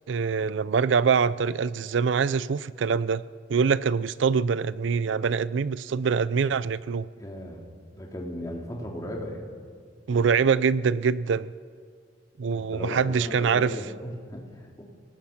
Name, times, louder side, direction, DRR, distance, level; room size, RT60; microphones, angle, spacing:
voice 1, 0.1-3.2 3.5-7.1 10.1-11.5 12.4-13.7, right 6 dB, 75° right, 18 dB, 0.4 m, -24 dB
voice 2, 7.2-7.6 8.0-9.5 12.5-14.8, equal, 20° left, 0 dB, 2.8 m, -36 dB
26.5 x 18.5 x 5.8 m, 2.1 s
head